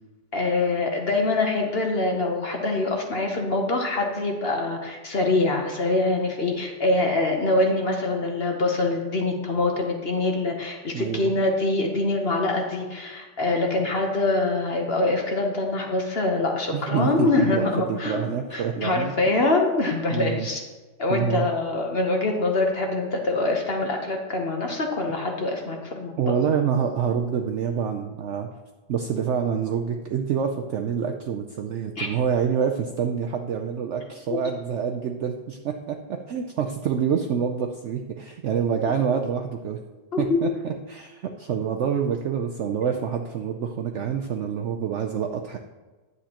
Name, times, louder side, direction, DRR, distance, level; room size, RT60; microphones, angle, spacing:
voice 1, 0.3-18.2 18.5-20.6 21.0-26.2 32.0-32.1 40.1-40.4, left 2 dB, 45° left, 2 dB, 1.0 m, -24 dB
voice 2, 10.9-11.3 16.7-19.4 20.1-20.5 21.1-21.5 26.2-28.5 28.9-39.8 40.2-45.6, right 7 dB, 90° right, 4 dB, 0.6 m, -27 dB
9.9 x 7.9 x 2.9 m, 1.2 s
omnidirectional pair, 1.8 m